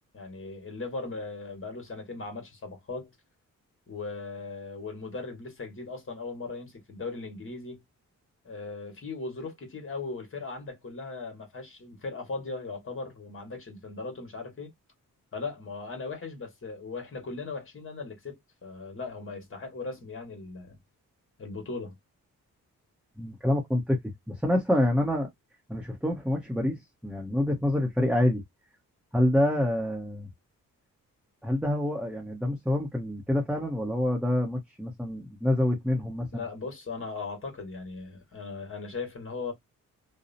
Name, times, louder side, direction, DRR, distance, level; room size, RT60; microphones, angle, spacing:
voice 1, 0.1-3.1 3.9-7.8 8.4-14.7 15.3-18.3 18.6-20.8 21.4-22.0 36.3-39.5, left 3 dB, 40° left, 1.2 m, -38 dB
voice 2, 23.2-24.0 24.3-25.3 25.7-28.4 29.1-30.3 31.4-36.4, left 1 dB, 5° right, 0.8 m, -27 dB
2.7 x 2.0 x 2.5 m
cardioid pair, 80°, 34 cm